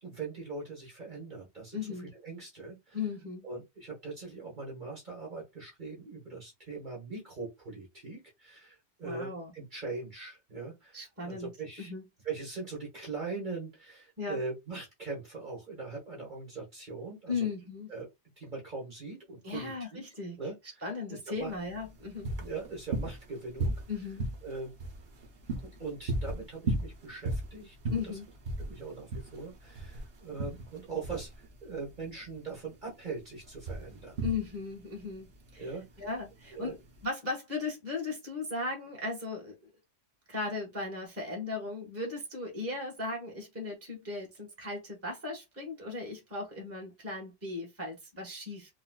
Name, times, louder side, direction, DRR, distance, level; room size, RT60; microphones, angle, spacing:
voice 1, 0.0-3.0 3.4-11.9 12.2-17.5 17.9-18.1 18.4-20.0 20.4-20.8 21.1-21.5 22.4-23.8 24.4-24.7 25.6-28.2 28.6-31.3 31.6-34.2 35.6-36.1 36.5-36.8, right 4 dB, 40° right, 1.3 m, -41 dB
voice 2, 1.7-2.1 2.9-3.4 9.0-9.5 10.9-11.5 11.8-12.0 14.2-14.4 17.3-17.9 19.4-20.4 20.8-22.3 23.9-24.2 27.9-28.3 34.2-35.3 35.5-35.7 36.0-36.8 37.0-39.7 40.3-48.7, left 3 dB, 10° right, 1.2 m, -37 dB
sound 1, 21.4-37.0, right 2 dB, 60° right, 0.9 m, -37 dB
4.0 x 2.3 x 2.2 m
omnidirectional pair, 1.2 m